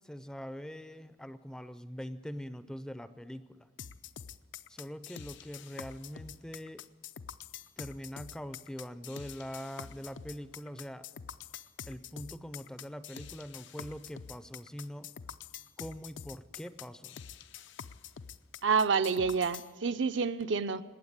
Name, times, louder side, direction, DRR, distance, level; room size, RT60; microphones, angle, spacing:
voice 1, 0.0-3.7 4.7-6.8 7.8-11.1 11.9-15.1 15.8-17.2, equal, 5° left, 12 dB, 0.4 m, -43 dB
sound 1, 3.8-19.7, left 8 dB, 65° left, 0.5 m, -46 dB
voice 2, 18.6-20.8, right 5 dB, 65° right, 10 dB, 0.6 m, -28 dB
19.5 x 8.8 x 8.1 m, 1.5 s
head